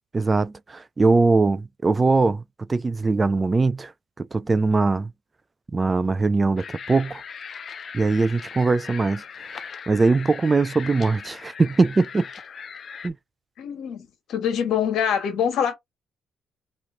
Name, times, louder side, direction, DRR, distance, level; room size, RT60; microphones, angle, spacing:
voice 1, 0.1-2.4 2.7-3.9 4.2-5.1 5.7-7.2 7.9-9.2 9.9-12.3 13.0-13.1, right 3 dB, 25° right, 0.3 m, -21 dB
sound 1, 6.6-13.1, left 6 dB, 50° left, 0.5 m, -39 dB
voice 2, 13.6-15.7, left 8 dB, 75° left, 1.3 m, -25 dB
3.0 x 2.8 x 3.7 m
cardioid pair, 90°, 0 cm